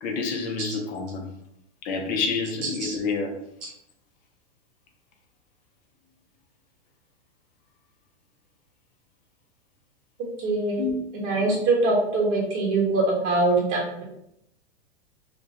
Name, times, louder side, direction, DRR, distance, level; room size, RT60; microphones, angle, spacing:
voice 1, 0.0-1.3 1.8-3.3 10.8-11.0, left 4 dB, 25° left, 2 dB, 0.4 m, -28 dB
voice 2, 10.4-10.8 11.2-14.0, right 2 dB, 55° right, -4 dB, 1.1 m, -23 dB
2.2 x 2.2 x 2.7 m, 0.78 s
hypercardioid pair, 120°, 34 cm